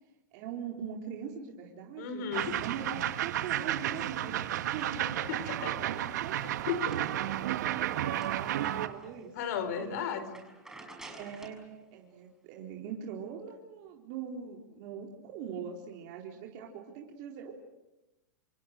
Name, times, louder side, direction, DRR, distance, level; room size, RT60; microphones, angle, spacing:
voice 1, 0.3-2.2 2.6-5.2 5.6-6.3 7.1-9.3 9.8-10.1 11.1-17.6, right 7 dB, 50° right, -1 dB, 4.2 m, -42 dB
voice 2, 2.0-2.6 4.8-4.9 5.3-5.7 6.3-7.0 9.3-10.4, left 7 dB, 60° left, 11 dB, 5.0 m, -35 dB
sound 1, 2.3-8.9, right 12 dB, 70° right, 1.8 m, -32 dB
sound 2, 5.8-9.3 9.7-9.9 10.2-11.6, right 2 dB, 5° right, 6.5 m, -52 dB
27.5 x 27.5 x 6.8 m, 0.97 s
hypercardioid pair, 125°, 10 cm